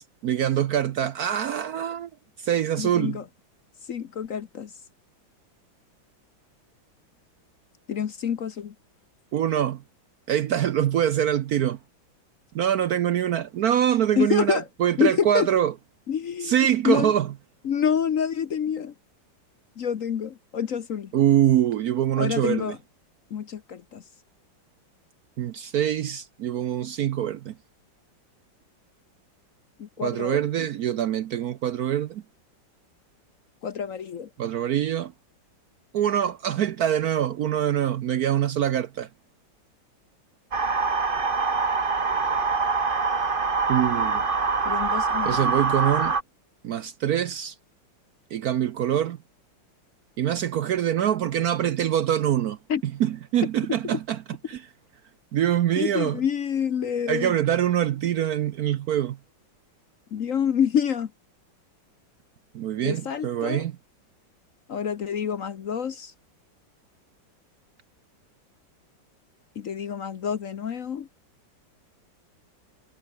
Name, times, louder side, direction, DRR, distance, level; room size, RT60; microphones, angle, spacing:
voice 1, 0.0-2.1 2.4-3.2 9.3-9.8 10.3-11.8 12.5-15.7 16.4-17.3 21.1-22.8 25.4-27.5 30.0-32.2 34.4-35.1 35.9-39.1 43.7-44.2 45.2-46.2 46.6-47.6 48.3-49.2 50.2-52.6 52.8-54.2 54.5-54.7 55.3-56.2 57.1-59.2 62.5-63.8, right 10 dB, 65° right, 1.0 m, -24 dB
voice 2, 2.8-3.2 3.9-4.7 7.9-8.7 14.2-14.6 15.0-15.5 16.1-16.5 16.8-17.1 17.6-18.9 19.8-21.1 22.2-22.8 23.3-24.0 29.8-30.7 33.6-34.3 44.6-45.5 52.7-52.8 55.8-57.3 60.1-61.1 62.8-63.6 64.7-66.1 69.6-71.1, left 8 dB, 50° left, 1.1 m, -27 dB
sound 1, 40.5-46.2, right 4 dB, 30° right, 1.6 m, -24 dB
omnidirectional pair, 2.1 m